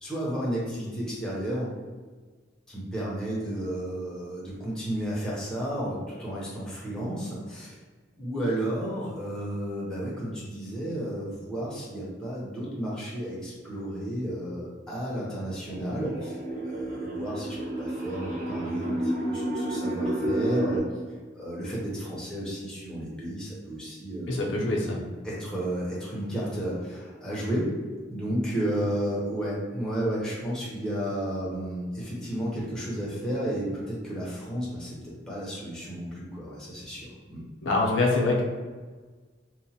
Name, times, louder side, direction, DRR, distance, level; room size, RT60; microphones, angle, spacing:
voice 1, 0.0-1.8 2.7-7.8 8.2-16.3 16.7-20.8 21.3-24.4 25.2-27.7 28.1-37.4, right 1 dB, 5° left, -7 dB, 0.6 m, -32 dB
sound 1, 15.6-20.8, right 1 dB, 40° right, 0.6 m, -30 dB
voice 2, 24.3-25.0 37.6-38.4, left 2 dB, 85° left, -2 dB, 0.5 m, -24 dB
2.9 x 2.1 x 2.7 m, 1.4 s
head